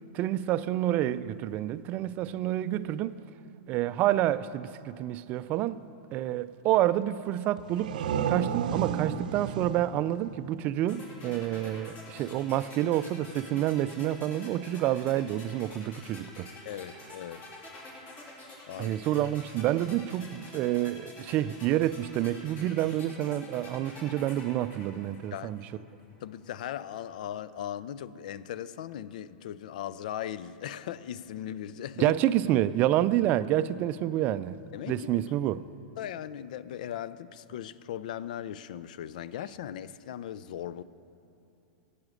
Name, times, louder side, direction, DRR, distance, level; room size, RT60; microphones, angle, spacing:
voice 1, 0.1-3.1 3.7-5.8 6.1-8.0 8.3-16.5 18.8-25.6 32.0-35.6, right 13 dB, 40° right, 0.3 m, -28 dB
sound 1, 7.6-11.2, right 7 dB, 80° right, 0.6 m, -33 dB
sound 2, 10.9-25.8, left 2 dB, 35° left, 2.5 m, -48 dB
voice 2, 16.6-17.4 18.7-19.0 25.3-25.5 26.2-32.2 34.7-35.2 36.0-40.8, left 10 dB, 70° left, 0.4 m, -38 dB
12.0 x 8.5 x 6.4 m
hypercardioid pair, 130°, 4 cm